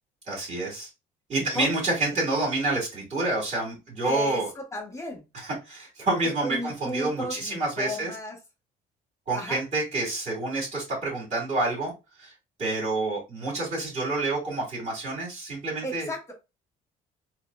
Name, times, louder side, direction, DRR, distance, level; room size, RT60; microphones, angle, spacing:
voice 1, 0.3-0.9 1.3-4.5 5.4-8.1 9.3-11.9 12.2-12.3 12.6-16.1, right 2 dB, 40° right, 1.9 m, -28 dB
voice 2, 4.0-5.2 6.2-8.4 9.3-9.6 15.8-16.3, left 1 dB, 15° left, 1.1 m, -34 dB
4.0 x 2.2 x 2.3 m
cardioid pair, 110°, 17 cm